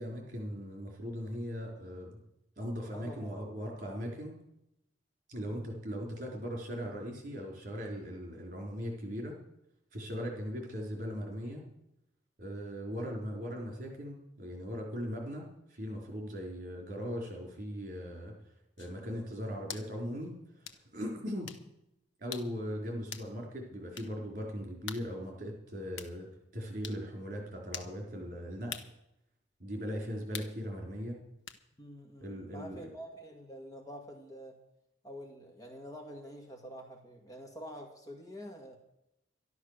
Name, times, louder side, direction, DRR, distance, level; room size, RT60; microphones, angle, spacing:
voice 1, 0.0-2.2 2.6-4.3 5.3-9.3 9.9-11.6 12.4-15.4 15.7-18.3 18.8-21.5 22.2-26.3 26.5-28.9 29.6-31.2 32.2-32.9, equal, 45° right, 0 dB, 4.2 m, -39 dB
voice 2, 2.9-3.4 5.4-5.7 31.8-34.6 35.0-38.8, equal, 20° left, 2 dB, 1.9 m, -47 dB
sound 1, 18.8-19.0 19.7-19.9 20.7-20.8 21.5-21.7 22.3-22.5 23.1-23.3 24.0-24.1 24.9-25.1 26.0-26.1 26.8-27.0 27.7-27.9 28.7-28.9 30.3-30.6 31.5-31.6, left 7 dB, 80° left, 1.1 m, -43 dB
12.0 x 12.0 x 6.7 m, 0.84 s
head